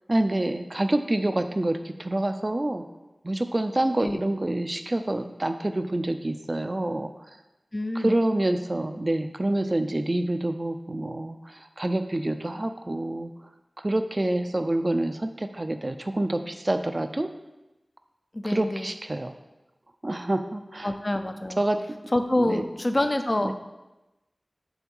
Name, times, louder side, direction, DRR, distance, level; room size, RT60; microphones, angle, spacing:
voice 1, 0.1-2.8 3.2-7.1 7.9-13.3 13.8-17.3 18.4-19.3 20.0-20.9 21.6-21.8 22.4-22.6 23.4-23.5, right 1 dB, 40° right, 8 dB, 0.5 m, -27 dB
voice 2, 7.7-8.2 18.3-18.9 20.8-21.6 22.1-23.5, left 1 dB, 40° left, 7 dB, 0.6 m, -26 dB
7.0 x 3.5 x 5.5 m, 1.0 s
wide cardioid pair, 45°, 0 cm